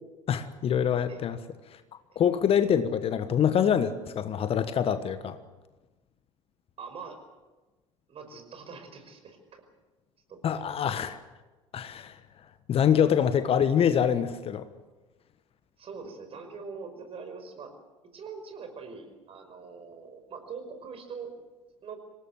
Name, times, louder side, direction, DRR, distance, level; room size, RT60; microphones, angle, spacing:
voice 1, 0.3-1.4 2.1-5.4 10.4-11.2 11.7-12.2 12.7-14.7, left 8 dB, 35° left, 12 dB, 1.3 m, -25 dB
voice 2, 6.8-7.2 8.1-9.6 10.3-10.6 15.8-17.7 18.1-21.3 21.8-22.0, right 5 dB, 35° right, 6 dB, 5.4 m, -43 dB
26.5 x 18.5 x 7.8 m, 1.2 s
figure-of-eight pair, 65°, 17 cm